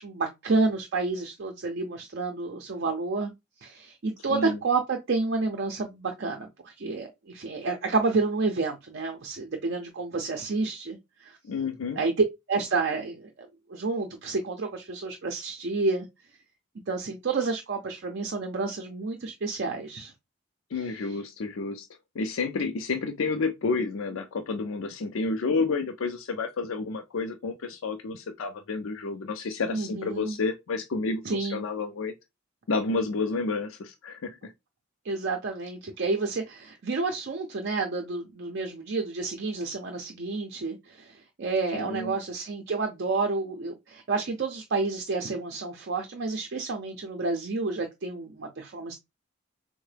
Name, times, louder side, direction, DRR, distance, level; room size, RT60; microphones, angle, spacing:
voice 1, 0.0-3.3 3.6-11.4 12.0-12.1 12.5-16.1 16.9-20.1 29.7-30.4 31.2-31.6 35.0-49.0, right 3 dB, 55° right, 0.5 m, -30 dB
voice 2, 4.3-4.6 11.4-12.0 20.7-21.9 22.1-32.1 32.7-34.5 41.7-42.2, left 4 dB, 70° left, 0.4 m, -30 dB
3.6 x 2.1 x 3.3 m
head